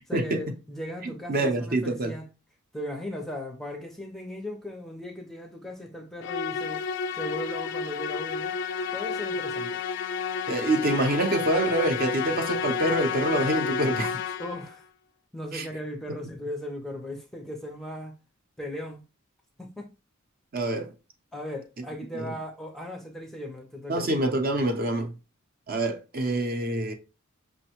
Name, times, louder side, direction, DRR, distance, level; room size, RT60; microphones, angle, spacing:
voice 1, 0.1-2.3 2.7-6.9 7.2-8.5 8.9-9.8 14.4-14.9 15.3-18.1 18.6-19.0 19.6-19.9 21.3-24.1, left 1 dB, ahead, 0.5 m, -37 dB
voice 2, 1.3-2.1 10.5-14.2 15.5-15.7 20.5-20.9 22.1-22.3 23.9-25.1 25.7-26.9, right 1 dB, 45° right, 0.6 m, -26 dB
Musical instrument, 6.2-14.7, left 6 dB, 60° left, 0.3 m, -31 dB
5.4 x 2.1 x 2.9 m
head